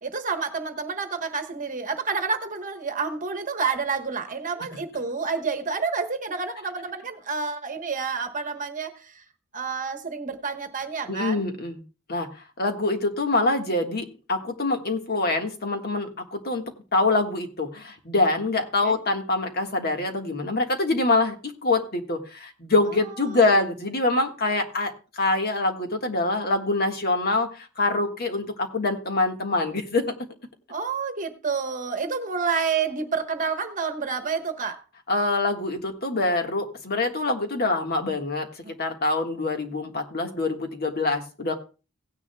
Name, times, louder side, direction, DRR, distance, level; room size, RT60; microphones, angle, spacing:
voice 1, 0.0-9.2 9.5-11.4 18.8-19.0 22.9-23.6 30.7-34.8, right 5 dB, 40° right, 1.1 m, -29 dB
voice 2, 11.1-11.8 12.1-12.3 12.6-16.6 16.9-30.1 35.1-38.5 38.8-41.5, left 2 dB, 50° left, 1.6 m, -25 dB
17.0 x 9.9 x 2.2 m
head